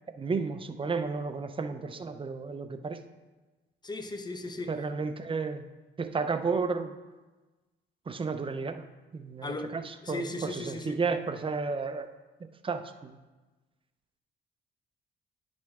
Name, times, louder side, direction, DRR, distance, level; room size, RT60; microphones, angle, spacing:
voice 1, 0.2-3.0 4.7-5.6 6.0-7.0 8.1-8.8 9.1-9.8 10.1-12.1 12.6-13.2, right 4 dB, 25° right, 9 dB, 0.6 m, -32 dB
voice 2, 3.8-4.7 9.4-9.7 10.0-11.0, left 2 dB, 20° left, 7 dB, 0.7 m, -36 dB
9.9 x 5.1 x 3.6 m, 1.2 s
cardioid pair, 90°, 20 cm